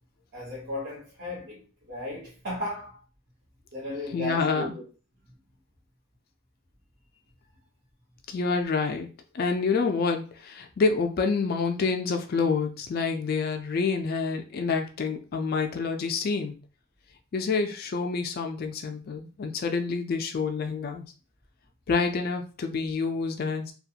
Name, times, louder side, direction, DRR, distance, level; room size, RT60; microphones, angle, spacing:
voice 1, 0.3-3.0 3.7-4.8 5.2-5.3, left 1 dB, 50° right, 0.9 m, -36 dB
voice 2, 4.1-4.7 8.3-9.1 9.3-16.6 17.3-21.1 21.9-23.7, left 4 dB, 45° left, 0.3 m, -27 dB
2.4 x 2.2 x 2.7 m
head